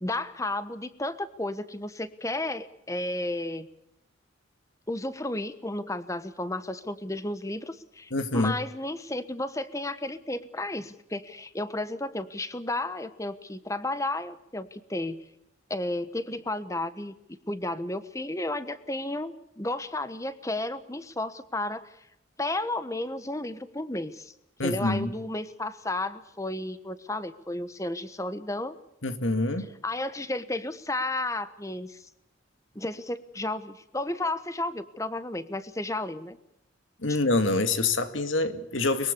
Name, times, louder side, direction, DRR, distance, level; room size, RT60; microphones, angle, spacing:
voice 1, 0.0-3.7 4.9-15.2 15.7-17.1 17.5-22.0 22.4-24.3 24.6-28.8 29.8-32.1 32.7-36.4 37.1-37.2, left 2 dB, 15° left, 13 dB, 1.2 m, -33 dB
voice 2, 8.1-8.5 24.6-25.1 29.0-29.7 37.0-39.1, left 2 dB, 70° left, 10 dB, 2.2 m, -26 dB
23.5 x 22.0 x 6.9 m, 0.81 s
head